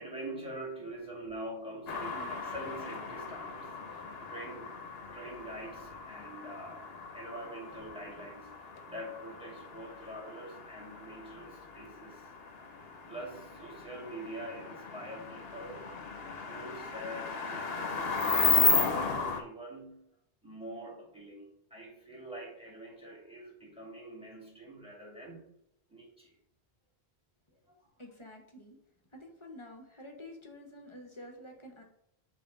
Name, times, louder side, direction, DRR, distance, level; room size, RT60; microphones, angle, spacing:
voice 1, 0.0-4.8 5.1-6.8 7.1-12.3 13.1-15.9 16.4-20.1 20.4-25.5 25.9-26.3 27.7-27.8, right 1 dB, 5° right, -3 dB, 2.1 m, -45 dB
sound 1, 1.9-19.4, left 5 dB, 70° left, 1.1 m, -35 dB
voice 2, 2.1-2.6 28.0-28.8 29.1-31.8, left 1 dB, 30° left, 2 dB, 1.0 m, -49 dB
5.6 x 3.3 x 5.2 m, 0.77 s
omnidirectional pair, 1.0 m